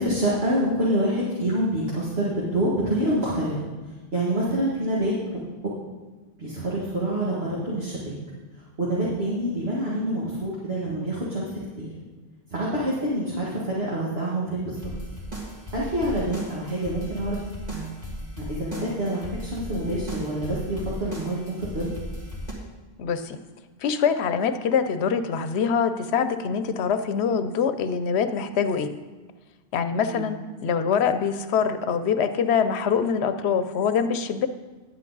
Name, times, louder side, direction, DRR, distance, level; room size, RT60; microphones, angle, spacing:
voice 1, 0.0-3.6 4.1-5.7 6.4-8.1 8.8-11.9 12.5-14.7 15.7-17.4 17.7-17.9 18.4-21.9 30.1-30.3, right 1 dB, 70° right, -6 dB, 2.0 m, -27 dB
sound 1, 14.8-22.5, equal, 40° right, 2.2 m, -36 dB
voice 2, 23.0-23.4 23.8-28.9 29.7-30.4 30.6-34.5, left 6 dB, 85° left, 10 dB, 0.9 m, -24 dB
10.5 x 8.4 x 4.0 m, 1.3 s
omnidirectional pair, 1.1 m